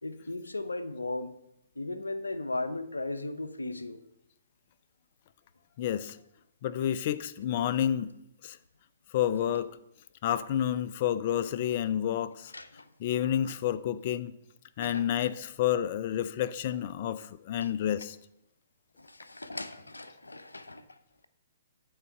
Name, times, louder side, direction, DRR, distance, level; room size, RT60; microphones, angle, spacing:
voice 1, 0.0-1.4 1.8-4.0 12.5-12.9 13.1-13.5 14.8-15.3 19.0-21.0, left 2 dB, 85° left, 11 dB, 0.6 m, -37 dB
voice 2, 5.8-6.2 6.6-8.1 8.4-8.6 9.1-9.7 10.2-12.5 13.0-14.3 14.8-18.2, left 10 dB, 45° left, 15 dB, 0.4 m, -29 dB
8.8 x 4.0 x 6.5 m, 0.81 s
figure-of-eight pair, 125°, 0 cm